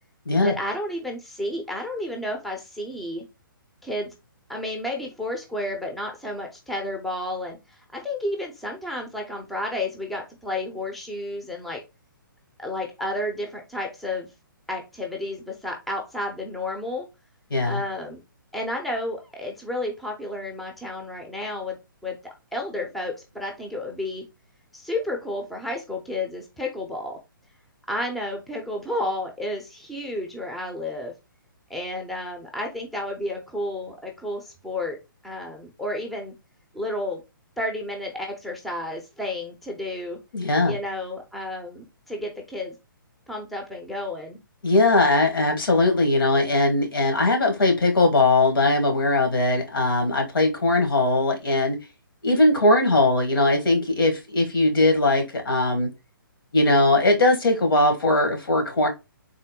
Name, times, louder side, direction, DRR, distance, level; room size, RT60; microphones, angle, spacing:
voice 1, 0.4-3.2 3.8-4.1 4.5-11.8 12.6-14.3 14.7-17.1 17.6-18.2 18.5-21.8 22.0-24.2 24.7-27.2 27.9-31.1 31.7-35.0 35.2-36.3 36.7-37.2 37.6-40.2 40.6-42.8 43.3-44.4, left 1 dB, ahead, 0.5 m, -31 dB
voice 2, 17.5-17.8 40.3-40.7 44.6-51.8 52.2-55.9 56.5-58.9, left 2 dB, 75° left, 1.3 m, -20 dB
3.7 x 2.1 x 3.6 m
hypercardioid pair, 140°, 12 cm